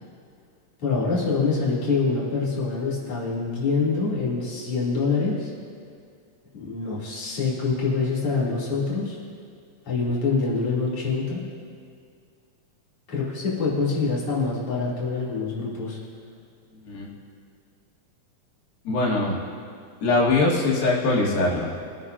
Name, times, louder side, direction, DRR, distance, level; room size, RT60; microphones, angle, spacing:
voice 1, 0.8-5.5 6.5-9.2 9.9-11.4 13.1-16.0, left 4 dB, 40° left, -8 dB, 3.6 m, -25 dB
voice 2, 18.9-19.4 20.0-21.8, left 2 dB, 80° left, -5 dB, 4.0 m, -22 dB
25.0 x 9.7 x 2.7 m, 2.2 s
omnidirectional pair, 4.2 m